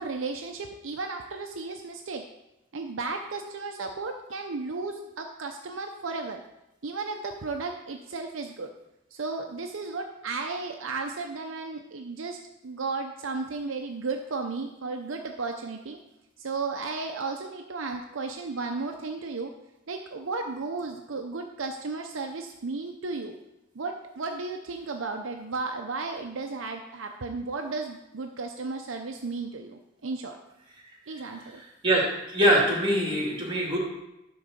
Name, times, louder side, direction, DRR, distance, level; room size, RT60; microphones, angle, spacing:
voice 1, 0.0-2.2 2.7-6.4 6.8-8.7 9.1-16.0 16.4-19.5 19.9-23.4 23.7-30.4 31.1-31.6, right 3 dB, 70° right, 3 dB, 0.6 m, -34 dB
voice 2, 31.6-33.8, right 1 dB, 25° right, -3 dB, 2.5 m, -24 dB
10.5 x 3.9 x 6.6 m, 0.91 s
head